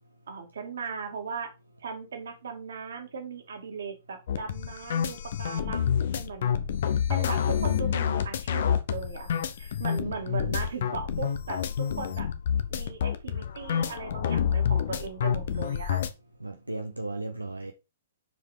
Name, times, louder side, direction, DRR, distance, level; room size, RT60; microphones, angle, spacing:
voice 1, 0.3-1.5 1.8-6.6 7.1-9.3 9.6-12.3 12.7-16.0, right 5 dB, 65° right, 2.2 m, -38 dB
sound 1, 4.3-16.1, left 8 dB, 55° left, 0.9 m, -28 dB
voice 2, 16.4-17.7, right 2 dB, 90° right, 0.8 m, -36 dB
6.3 x 4.9 x 5.0 m
figure-of-eight pair, 115°, 0 cm